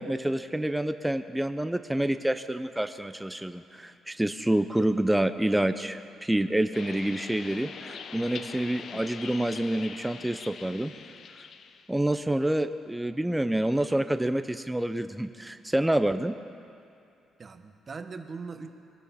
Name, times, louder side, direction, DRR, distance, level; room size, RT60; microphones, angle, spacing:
voice 1, 0.0-10.9 11.9-16.3, right 1 dB, 5° right, 10 dB, 0.5 m, -28 dB
sound 1, 6.7-11.9, left 6 dB, 60° left, 0.7 m, -43 dB
voice 2, 17.4-18.7, right 4 dB, 40° right, 7 dB, 1.0 m, -41 dB
22.0 x 13.0 x 4.2 m, 2.6 s
cardioid pair, 90°, 0 cm